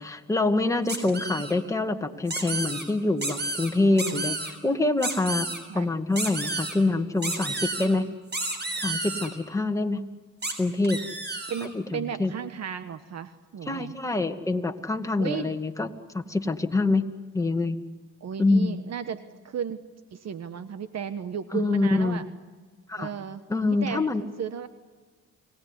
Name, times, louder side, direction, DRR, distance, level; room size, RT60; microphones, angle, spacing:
voice 1, 0.0-8.1 8.8-10.0 10.6-11.0 11.6-12.3 13.7-15.9 16.1-17.1 17.3-17.8 18.4-18.8 21.5-22.2 22.9-23.1 23.5-24.2, left 2 dB, 10° left, 5 dB, 2.2 m, -25 dB
sound 1, 0.9-1.5 2.3-2.8 3.2-3.7 4.0-4.5 5.0-5.6 6.2-6.7 7.2-7.9 8.3-9.3 10.4-10.5 10.8-11.7, right 2 dB, 30° right, 6.2 m, -31 dB
voice 2, 3.9-4.3 5.7-5.9 11.5-13.9 15.2-15.5 18.2-19.8 20.1-22.2 23.0-23.4 23.7-24.0 24.4-24.7, right 8 dB, 55° right, 11 dB, 1.4 m, -34 dB
29.5 x 19.0 x 9.8 m, 1.4 s
supercardioid pair, 70°, 32 cm